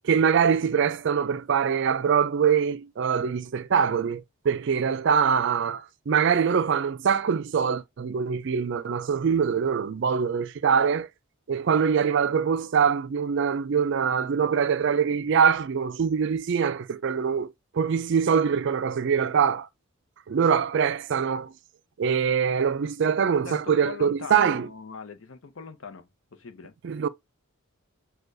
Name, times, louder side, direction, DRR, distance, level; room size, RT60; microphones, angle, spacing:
voice 1, 0.0-11.1 11.5-19.7 20.3-21.5 22.0-24.7 26.8-27.1, right 7 dB, 55° right, 0.4 m, -23 dB
voice 2, 23.4-26.7, left 5 dB, 65° left, 0.7 m, -41 dB
6.4 x 2.3 x 2.5 m
head